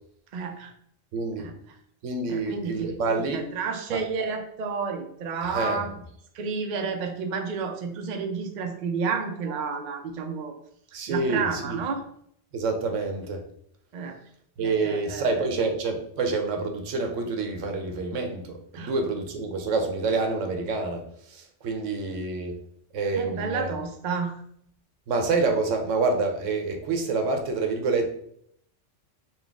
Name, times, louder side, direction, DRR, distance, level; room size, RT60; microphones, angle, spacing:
voice 1, 0.3-0.7 1.4-1.5 2.3-2.9 3.3-5.9 6.3-10.5 11.1-12.0 13.9-14.2 14.6-15.5 18.7-18.9 23.1-24.4, right 5 dB, 55° right, 4 dB, 0.5 m, -31 dB
voice 2, 1.1-1.5 2.0-3.4 3.9-4.0 5.5-5.8 10.9-11.8 12.5-13.4 14.6-22.6 22.9-23.7 25.1-28.1, right 3 dB, 80° right, 4 dB, 1.0 m, -27 dB
4.0 x 2.4 x 3.4 m, 0.68 s
omnidirectional pair, 1.3 m